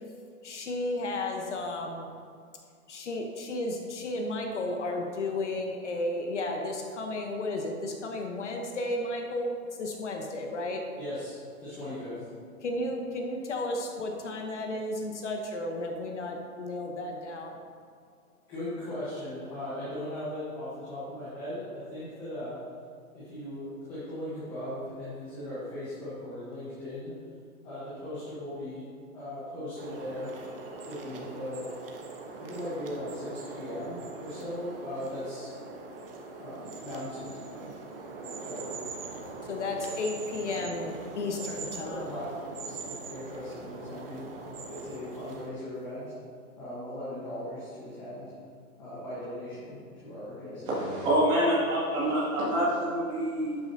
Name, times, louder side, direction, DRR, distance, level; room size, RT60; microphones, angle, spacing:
voice 1, 0.4-2.1 2.9-9.5 9.8-10.8 12.6-17.6 39.5-42.0, left 2 dB, 50° left, 2 dB, 1.1 m, -33 dB
voice 2, 11.0-12.2 18.5-22.6 23.1-27.1 27.6-28.8 29.1-30.3 30.9-31.6 32.4-35.5 36.4-37.7 38.4-38.9 41.7-44.3 44.7-46.1 46.6-48.3 48.8-51.0, left 1 dB, 10° left, -11 dB, 1.1 m, -38 dB
sound 1, 29.8-45.5, right 3 dB, 40° right, 1.1 m, -42 dB
voice 3, 50.7-53.6, right 1 dB, 15° right, -8 dB, 2.1 m, -26 dB
12.0 x 8.8 x 2.8 m, 2.3 s
hypercardioid pair, 170°, 45 cm